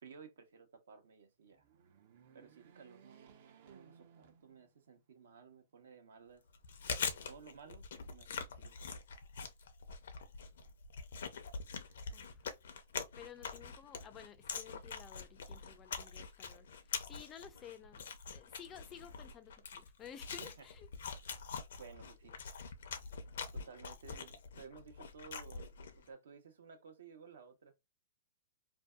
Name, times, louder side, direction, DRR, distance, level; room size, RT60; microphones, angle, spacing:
voice 1, 0.0-1.6 2.3-6.4 7.3-8.3 8.6-9.0 20.4-20.7 21.8-22.4 23.5-27.7, right 6 dB, 80° right, 0.8 m, -56 dB
sound 1, 1.4-5.0 5.5-5.6 6.7-7.5, right 7 dB, 55° right, 0.5 m, -63 dB
Chewing mastication, 6.5-26.1, left 5 dB, 75° left, 0.5 m, -44 dB
voice 2, 12.1-12.5 13.1-20.9, left 9 dB, 20° left, 0.3 m, -54 dB
2.6 x 2.2 x 2.2 m
hypercardioid pair, 145°, 0 cm